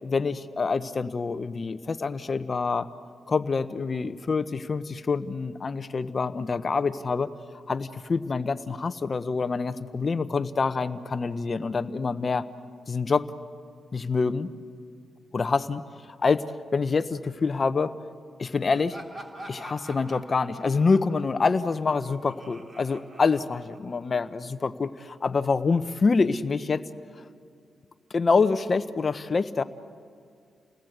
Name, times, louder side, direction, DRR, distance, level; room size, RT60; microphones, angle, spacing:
voice 1, 0.0-2.9 3.3-7.3 7.7-12.5 12.9-13.3 13.9-14.5 15.3-15.8 16.2-16.4 16.7-17.9 18.4-19.0 19.5-26.8 28.1-29.6, left 4 dB, 40° left, 12 dB, 1.0 m, -26 dB
Laughter, 18.7-24.2, right 1 dB, 30° right, 3.1 m, -46 dB
30.0 x 19.5 x 8.1 m, 2.3 s
cardioid pair, 75°, 0 cm